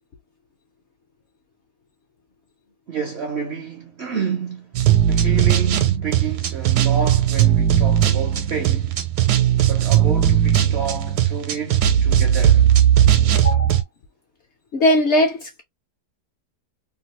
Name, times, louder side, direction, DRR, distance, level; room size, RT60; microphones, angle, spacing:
voice 1, 2.9-4.7 5.1-9.0 9.7-12.7, right 6 dB, 60° right, 0.7 m, -29 dB
sound 1, 4.7-13.8, right 10 dB, 80° right, 1.2 m, -17 dB
voice 2, 13.4-13.8 14.7-15.6, left 1 dB, 60° left, 0.7 m, -19 dB
2.8 x 2.3 x 3.1 m
omnidirectional pair, 1.7 m